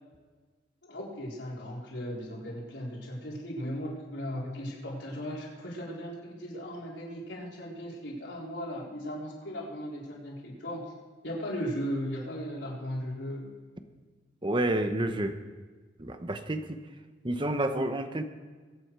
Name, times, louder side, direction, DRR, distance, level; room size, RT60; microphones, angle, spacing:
voice 1, 0.8-10.8 11.2-13.5, equal, 90° left, -4 dB, 4.2 m, -37 dB
voice 2, 14.4-15.4 16.0-16.8 17.2-18.2, right 1 dB, 25° right, 8 dB, 0.9 m, -29 dB
22.0 x 8.6 x 4.8 m, 1.4 s
head